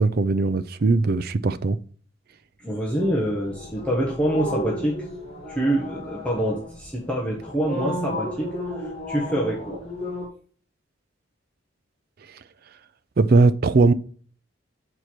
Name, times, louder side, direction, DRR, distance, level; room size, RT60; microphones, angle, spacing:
voice 1, 0.0-1.8 13.2-13.9, right 3 dB, 45° right, 0.4 m, -19 dB
voice 2, 2.6-5.0 5.5-8.5 8.8-9.8, right 1 dB, 5° left, 1.1 m, -26 dB
sound 1, 2.9-10.3, equal, 30° left, 1.3 m, -34 dB
6.6 x 4.4 x 4.5 m
head